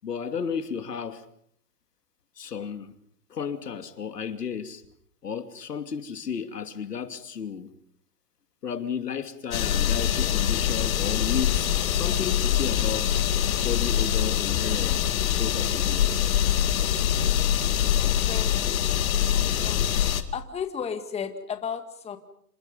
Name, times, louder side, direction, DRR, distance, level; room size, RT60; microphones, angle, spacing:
voice 1, 0.0-1.2 2.4-2.9 3.3-4.8 5.2-7.7 8.6-13.1 13.6-16.1, left 7 dB, 85° left, 2.8 m, -33 dB
sound 1, 9.5-20.2, left 10 dB, 60° left, 2.5 m, -24 dB
voice 2, 17.4-18.9 19.6-20.0 20.3-22.2, left 7 dB, 15° left, 2.0 m, -35 dB
28.0 x 27.5 x 5.4 m
hypercardioid pair, 135°, 46 cm